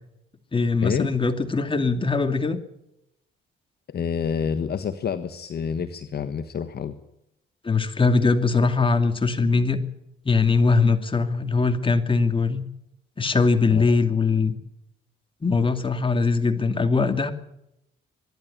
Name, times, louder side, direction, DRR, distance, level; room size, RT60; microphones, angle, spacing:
voice 1, 0.5-2.6 7.6-9.8 10.2-12.6 13.2-14.6 15.4-17.3, left 4 dB, 25° left, 7 dB, 2.5 m, -21 dB
voice 2, 3.9-6.9 13.7-14.0, left 7 dB, 55° left, 9 dB, 1.4 m, -28 dB
24.0 x 11.5 x 10.0 m, 0.82 s
cardioid pair, 90°, 20 cm